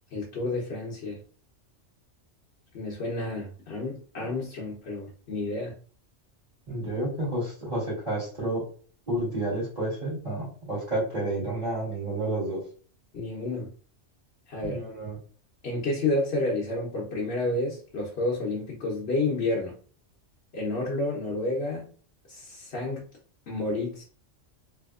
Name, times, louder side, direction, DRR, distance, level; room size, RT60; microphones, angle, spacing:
voice 1, 0.1-1.2 2.7-5.7 13.1-13.7 14.5-14.8 15.6-19.7 20.5-21.9 22.3-23.0 23.5-24.0, left 2 dB, 60° left, -3 dB, 1.0 m, -30 dB
voice 2, 6.7-8.6 9.1-12.6 14.6-15.2, right 1 dB, 35° right, -8 dB, 1.8 m, -30 dB
3.4 x 2.7 x 2.4 m, 0.43 s
omnidirectional pair, 1.3 m